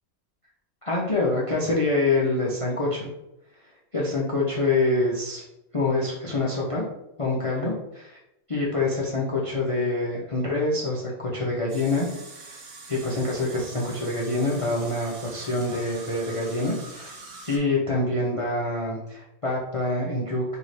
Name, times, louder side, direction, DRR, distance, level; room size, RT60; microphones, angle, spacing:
voice 1, 0.8-3.1 3.9-5.4 5.7-6.8 7.2-8.2 8.5-12.1 12.4-12.6 12.9-17.2 17.5-20.6, left 2 dB, 60° left, -4 dB, 0.3 m, -26 dB
sound 1, 11.7-17.6, right 3 dB, 75° right, 1.3 m, -44 dB
3.1 x 2.8 x 4.1 m, 0.86 s
omnidirectional pair, 1.5 m